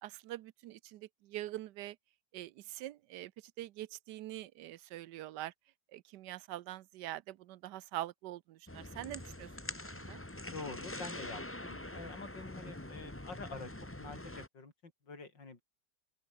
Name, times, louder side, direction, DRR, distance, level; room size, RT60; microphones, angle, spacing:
voice 1, 0.0-2.0 2.3-3.3 3.6-5.5 5.9-9.5 9.9-10.2, right 14 dB, 75° right, 1.2 m, -44 dB
sound 1, 8.7-14.5, left 1 dB, 10° left, 1.2 m, -45 dB
voice 2, 10.5-13.7 14.0-15.6, left 3 dB, 90° left, 4.8 m, -47 dB
open air
omnidirectional pair, 1.9 m